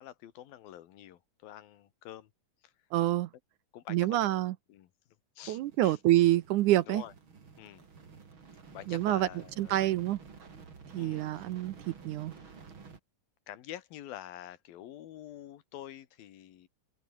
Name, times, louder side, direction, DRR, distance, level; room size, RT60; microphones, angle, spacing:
voice 1, 0.0-2.3 2.6-2.7 3.7-4.3 4.7-4.9 5.4-6.0 6.8-7.1 7.6-7.9 8.7-10.0 11.0-11.5 12.4-12.5 13.5-16.7, left 12 dB, 85° left, 3.3 m, -47 dB
voice 2, 2.9-3.3 3.9-4.5 5.5-7.0 8.9-9.3 9.6-10.2 10.9-12.3, right 14 dB, 75° right, 2.0 m, -27 dB
sound 1, 5.4-13.0, right 5 dB, 35° right, 3.5 m, -52 dB
omnidirectional pair, 4.1 m